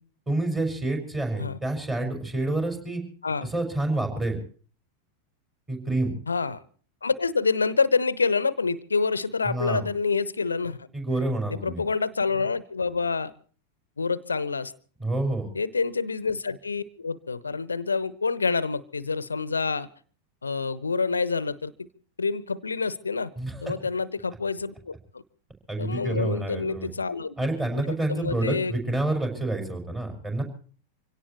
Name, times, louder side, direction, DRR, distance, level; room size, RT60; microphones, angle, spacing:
voice 1, 0.3-3.0 3.4-4.4 5.7-6.1 9.5-9.8 10.9-11.8 15.0-15.5 23.4-23.6 25.7-26.9 27.4-30.4, right 2 dB, 15° right, 3 dB, 5.8 m, -28 dB
voice 2, 6.3-6.6 7.0-10.9 11.5-13.3 14.0-14.7 15.5-19.9 20.4-21.9 22.2-23.3 23.6-25.2 25.8-27.3 27.8-28.7, left 4 dB, 75° left, 18 dB, 0.8 m, -27 dB
25.5 x 17.5 x 3.1 m, 0.42 s
figure-of-eight pair, 90°, 0 cm